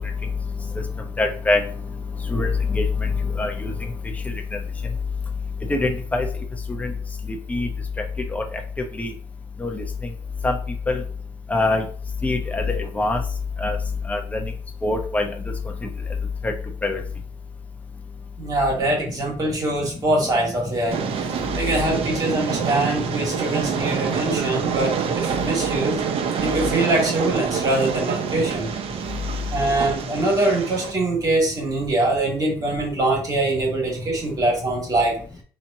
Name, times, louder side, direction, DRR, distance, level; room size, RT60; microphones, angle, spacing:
voice 1, 1.2-1.6 2.3-3.1 3.4-3.7 5.7-6.3 6.8-6.9 7.5-7.7 8.3-8.4 9.0-9.1 9.6-9.8 10.4-10.5 10.9-11.0 11.5-11.9 12.2-13.2 13.6-13.8 14.1-14.2 14.8-15.3 16.4-16.5 16.8-17.0, left 2 dB, 15° left, 3 dB, 0.7 m, -23 dB
voice 2, 18.4-26.0 26.4-28.7 29.5-35.2, right 2 dB, 35° right, -2 dB, 1.9 m, -23 dB
Train, 20.9-30.9, right 7 dB, 55° right, 0.6 m, -26 dB
4.1 x 3.0 x 2.7 m, 0.43 s
cardioid pair, 105°, 11 cm